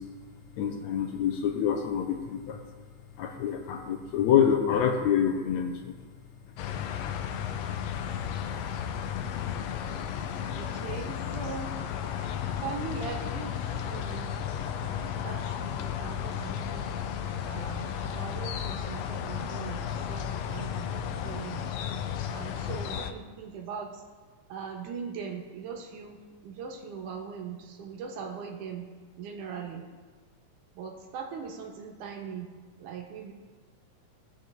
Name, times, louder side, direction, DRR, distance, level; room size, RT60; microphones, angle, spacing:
voice 1, 0.6-2.6 3.2-5.9, left 8 dB, 75° left, 4 dB, 1.9 m, -26 dB
sound 1, 6.6-23.1, left 9 dB, 90° left, 1.4 m, -34 dB
voice 2, 10.6-11.7 12.6-14.4 14.8-16.9 17.4-21.7 22.3-24.0 24.5-28.9 29.2-29.8 30.8-32.5 32.8-33.3, right 6 dB, 75° right, 1 dB, 2.6 m, -40 dB
17.0 x 6.4 x 3.5 m, 1.5 s
omnidirectional pair, 3.6 m